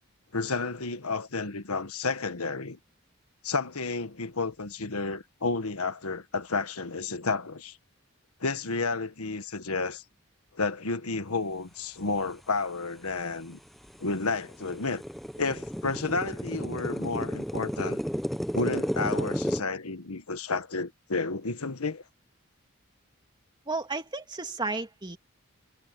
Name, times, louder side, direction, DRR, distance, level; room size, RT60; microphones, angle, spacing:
voice 1, 0.3-2.8 3.4-7.8 8.4-10.0 10.5-13.6 14.0-15.0 15.4-18.0 18.5-22.0, left 3 dB, 85° left, 1.5 m, -31 dB
sound 1, 13.1-13.2 13.7-19.6, equal, ahead, 0.8 m, -32 dB
voice 2, 23.7-25.2, right 3 dB, 20° right, 2.3 m, -33 dB
head